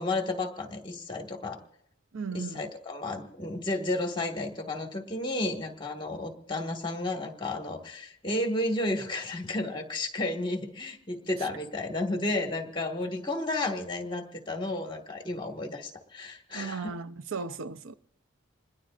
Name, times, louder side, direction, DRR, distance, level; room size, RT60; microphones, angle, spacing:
voice 1, 0.0-1.6 2.3-16.9, left 2 dB, 25° left, 1.7 m, -32 dB
voice 2, 2.1-2.6 16.5-17.9, right 5 dB, 80° right, 0.6 m, -36 dB
26.5 x 20.5 x 2.5 m
head